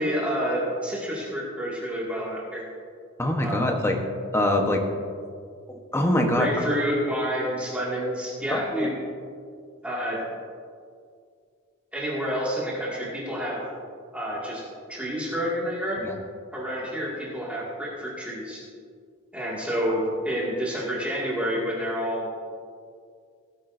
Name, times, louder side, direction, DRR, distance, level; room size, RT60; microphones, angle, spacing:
voice 1, 0.0-2.7 3.4-3.7 6.3-9.0 9.8-10.2 11.9-13.6 14.1-14.6 14.9-16.0 16.5-18.6 19.3-22.3, equal, 5° right, -6 dB, 2.1 m, -29 dB
voice 2, 3.2-3.9 4.3-4.8 5.7-6.5 8.5-8.9 16.0-16.1, left 1 dB, 10° left, 1 dB, 1.0 m, -24 dB
17.5 x 9.1 x 2.6 m, 2.2 s
head